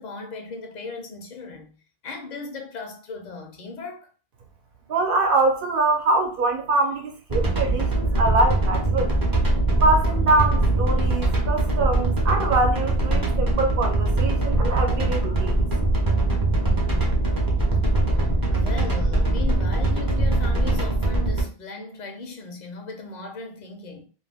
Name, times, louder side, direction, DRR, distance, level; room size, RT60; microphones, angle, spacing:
voice 1, 0.0-1.7 2.0-4.1 18.1-24.1, left 4 dB, 50° left, 0.7 m, -37 dB
voice 2, 4.9-9.1 9.8-15.6, right 2 dB, 60° right, 0.8 m, -24 dB
sound 1, 7.3-21.4, right 2 dB, 25° right, 0.6 m, -22 dB
2.5 x 2.2 x 3.4 m
omnidirectional pair, 1.1 m